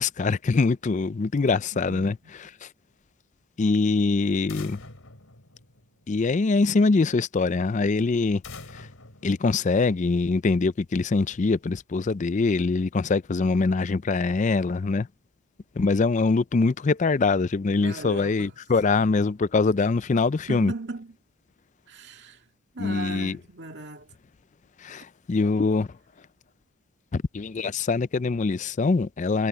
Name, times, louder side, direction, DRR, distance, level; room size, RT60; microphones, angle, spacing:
voice 1, 0.0-2.2 2.6-2.7 3.6-4.8 6.1-8.4 8.7-8.9 9.2-15.1 15.8-20.7 22.8-23.4 24.8-25.9 27.1-29.5, left 3 dB, 35° left, 0.4 m, -23 dB
voice 2, 1.9-2.3 17.8-18.5 20.5-21.1 21.9-22.4 22.7-24.1 24.9-25.0, right 3 dB, 50° right, 2.3 m, -38 dB
sound 1, 4.5-6.3 8.4-10.2, left 3 dB, 65° left, 3.7 m, -45 dB
head